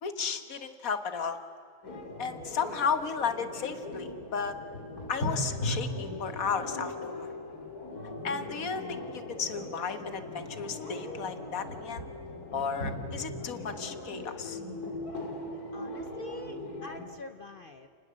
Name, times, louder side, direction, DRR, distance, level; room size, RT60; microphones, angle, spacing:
voice 1, 0.0-1.4 2.2-4.6 5.1-7.3 8.2-12.0 12.5-14.6, left 6 dB, 65° left, 10 dB, 1.8 m, -34 dB
sound 1, 1.8-17.1, left 1 dB, 85° left, 3.2 m, -39 dB
voice 2, 15.7-17.9, left 3 dB, 45° left, 8 dB, 0.8 m, -45 dB
30.0 x 19.5 x 7.6 m, 2.5 s
omnidirectional pair, 1.6 m